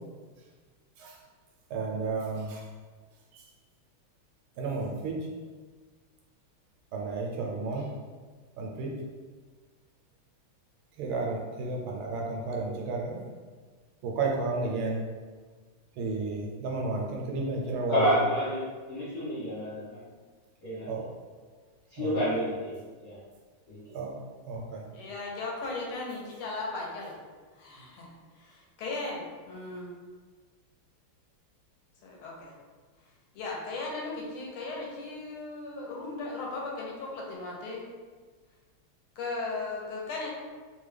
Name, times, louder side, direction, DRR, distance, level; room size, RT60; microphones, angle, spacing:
voice 1, 1.7-2.6 3.3-3.4 4.6-5.2 6.9-7.9 8.6-8.9 11.0-13.2 14.0-15.0 16.0-18.2 20.9-21.0 22.0-22.2 23.9-24.1 24.5-24.9, right 3 dB, 75° right, -1 dB, 1.4 m, -32 dB
voice 2, 17.9-18.6 18.9-20.0 20.6-20.9 21.9-22.7 23.0-23.2 23.7-23.8, equal, 60° left, -9 dB, 1.0 m, -29 dB
voice 3, 24.9-27.1 27.5-29.9 32.0-32.5 33.3-37.8 39.2-40.3, left 3 dB, 80° left, -2 dB, 1.6 m, -37 dB
3.5 x 2.2 x 3.2 m, 1.4 s
omnidirectional pair, 2.4 m